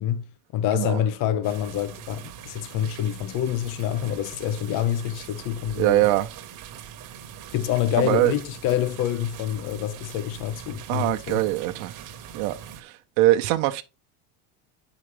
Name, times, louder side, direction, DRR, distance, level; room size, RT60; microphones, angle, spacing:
voice 1, 0.0-6.1 7.5-11.4, left 11 dB, 45° left, 0.8 m, -27 dB
sound 1, 1.4-12.8, right 9 dB, 45° right, 1.3 m, -42 dB
voice 2, 5.8-6.3 8.0-8.3 10.9-11.9 12.3-13.8, right 17 dB, 70° right, 1.0 m, -22 dB
9.8 x 5.0 x 3.3 m
supercardioid pair, 135°, 43 cm